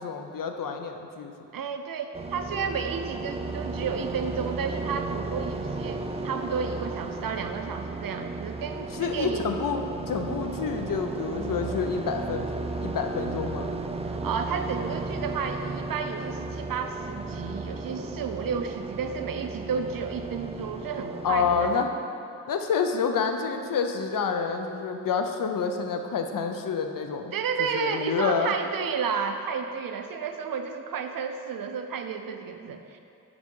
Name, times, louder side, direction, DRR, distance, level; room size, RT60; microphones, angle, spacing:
voice 1, 0.0-1.3 9.0-13.7 21.2-21.9 22.5-27.4 27.7-28.5, left 6 dB, 75° left, 5 dB, 0.5 m, -28 dB
voice 2, 1.5-9.5 14.1-21.9 27.3-33.0, right 6 dB, 85° right, 7 dB, 0.5 m, -32 dB
sound 1, 2.1-21.8, right 3 dB, 20° right, 0.3 m, -34 dB
5.0 x 4.7 x 5.3 m, 2.6 s
wide cardioid pair, 105°, 33 cm